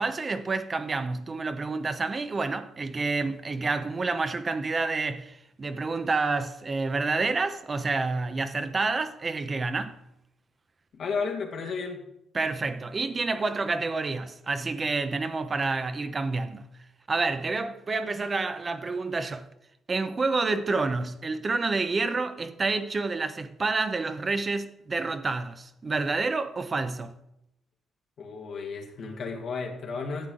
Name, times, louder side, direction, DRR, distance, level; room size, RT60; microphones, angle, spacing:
voice 1, 0.0-10.0 12.3-16.7 17.1-19.5 19.9-27.1, right 3 dB, 35° right, 0.7 m, -29 dB
voice 2, 10.9-12.0 28.2-30.3, left 5 dB, 65° left, 1.9 m, -33 dB
11.5 x 7.3 x 3.8 m
cardioid pair, 90°, 0 cm